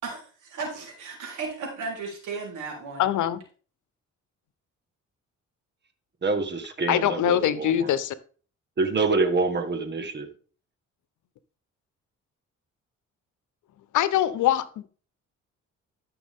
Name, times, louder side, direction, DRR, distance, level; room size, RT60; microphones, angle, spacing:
voice 1, 0.0-3.0, right 4 dB, 85° right, 0 dB, 4.1 m, -35 dB
voice 2, 3.0-3.4 6.9-8.1 13.9-14.9, left 11 dB, 75° left, 14 dB, 1.0 m, -23 dB
voice 3, 6.2-7.9 8.8-10.3, right 3 dB, 35° right, 8 dB, 1.7 m, -26 dB
13.0 x 6.1 x 3.7 m, 0.40 s
cardioid pair, 90°, 30 cm